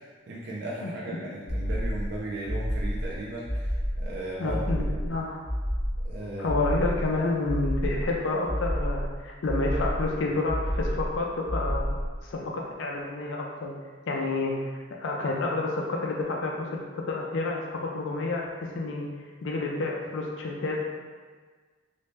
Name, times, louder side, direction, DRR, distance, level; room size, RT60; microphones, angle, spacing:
voice 1, 0.3-5.1 6.0-6.6, right 1 dB, 60° right, -5 dB, 0.5 m, -36 dB
sound 1, 1.5-2.1 2.5-3.1 3.5-4.1 4.5-5.1 5.5-6.1 6.5-7.1 7.5-8.1 8.5-9.1 9.5-10.1 10.5-11.1 11.5-12.1, equal, 5° right, 0.8 m, -29 dB
voice 2, 4.4-5.4 6.4-12.0 12.2-13.7 14.1-14.7 15.0-18.5 18.7-19.1 19.4-20.8, left 2 dB, 80° left, -1 dB, 0.4 m, -29 dB
3.1 x 2.7 x 3.2 m, 1.5 s
head